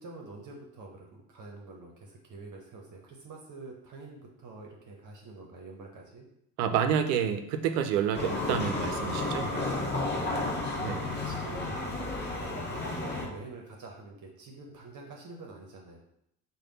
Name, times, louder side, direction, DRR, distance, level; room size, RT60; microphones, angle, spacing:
voice 1, 0.0-6.3 9.2-12.0 12.2-16.0, right 3 dB, 45° right, 0 dB, 0.8 m, -46 dB
voice 2, 6.6-9.5 10.8-11.0, right 8 dB, 75° right, 8 dB, 0.6 m, -28 dB
sound 1, 8.1-13.3, left 2 dB, 25° left, 1.0 m, -32 dB
3.3 x 2.3 x 3.9 m, 0.78 s
hypercardioid pair, 55°, 45 cm